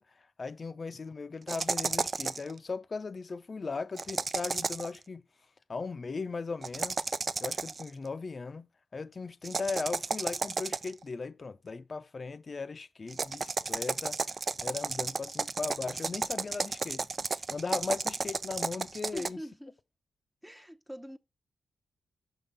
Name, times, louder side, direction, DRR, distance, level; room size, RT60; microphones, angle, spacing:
voice 1, 0.0-5.3 5.7-7.0 7.4-14.2 14.6-19.4, left 4 dB, 50° left, 0.5 m, -38 dB
sound 1, 1.5-2.5 4.0-5.0 6.6-7.9 9.4-11.0 13.1-19.3, right 4 dB, 50° right, 0.4 m, -33 dB
voice 2, 19.1-19.8 20.4-21.2, equal, 5° right, 0.8 m, -43 dB
5.6 x 3.6 x 5.5 m
supercardioid pair, 45°, 0 cm